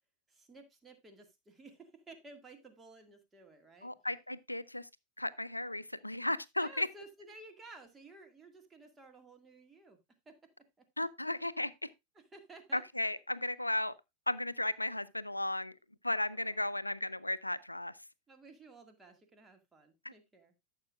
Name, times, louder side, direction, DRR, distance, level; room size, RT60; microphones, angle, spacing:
voice 1, 0.3-3.9 6.6-10.0 10.3-10.8 12.2-12.8 16.3-16.7 18.3-20.5, right 3 dB, 15° right, 2.0 m, -55 dB
voice 2, 3.8-4.9 5.2-6.9 11.0-11.7 12.7-13.9 14.3-15.7 16.0-18.0 20.0-20.1, left 1 dB, 85° left, 0.5 m, -35 dB
14.0 x 6.8 x 2.4 m
figure-of-eight pair, 90°, 0 cm